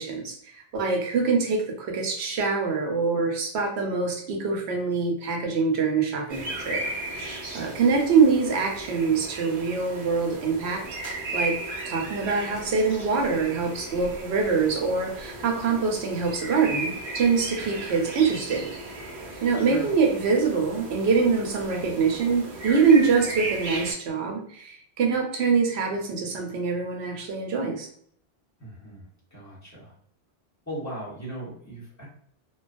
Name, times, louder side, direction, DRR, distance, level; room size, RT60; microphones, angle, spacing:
voice 1, 0.0-10.8 11.3-11.6 11.8-18.7 19.4-27.9, right 5 dB, 85° right, 2 dB, 0.9 m, -24 dB
sound 1, 6.3-23.9, right 2 dB, 55° right, 0.9 m, -36 dB
voice 2, 19.6-19.9 28.6-29.9 30.7-32.1, right 1 dB, 15° left, -7 dB, 1.0 m, -38 dB
2.3 x 2.2 x 2.4 m, 0.63 s
omnidirectional pair, 1.1 m